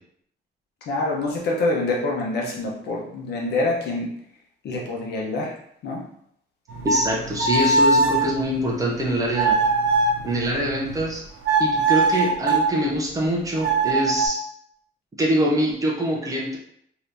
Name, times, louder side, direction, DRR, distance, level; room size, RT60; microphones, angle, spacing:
voice 1, 0.8-4.1 4.6-5.5 5.8-6.0, left 2 dB, 65° left, -2 dB, 0.9 m, -26 dB
sound 1, 6.7-11.1 11.4-12.7 13.6-14.3, right 3 dB, 80° right, 0.6 m, -22 dB
voice 2, 6.8-9.6 10.2-11.2 11.6-14.4 15.2-16.6, equal, 20° right, -3 dB, 0.6 m, -24 dB
2.8 x 2.7 x 3.4 m, 0.70 s
cardioid pair, 175°, 18 cm